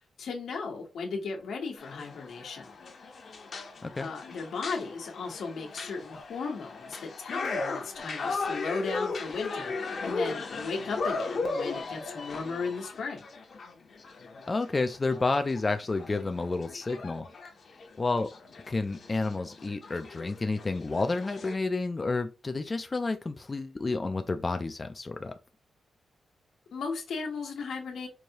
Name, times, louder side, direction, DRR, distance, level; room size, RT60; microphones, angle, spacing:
voice 1, 0.2-2.8 4.0-13.2 26.7-28.1, left 4 dB, 85° left, 1.1 m, -36 dB
sound 1, 1.8-21.5, left 3 dB, 50° left, 0.7 m, -37 dB
voice 2, 14.5-17.3 18.0-18.3 18.7-25.3, left 3 dB, 25° left, 0.3 m, -30 dB
4.7 x 2.7 x 2.9 m
wide cardioid pair, 155°, 0 cm